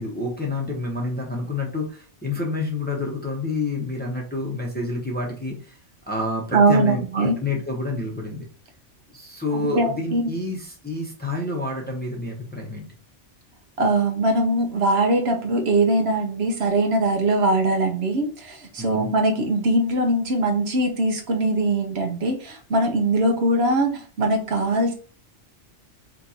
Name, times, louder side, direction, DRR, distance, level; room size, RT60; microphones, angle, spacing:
voice 1, 0.0-5.8 6.1-8.4 9.1-12.9 18.8-19.1, left 2 dB, 10° left, -2 dB, 0.9 m, -28 dB
voice 2, 6.5-7.4 9.5-10.3 13.8-24.9, right 2 dB, 65° right, 3 dB, 1.0 m, -21 dB
5.2 x 2.5 x 2.8 m, 0.39 s
omnidirectional pair, 1.2 m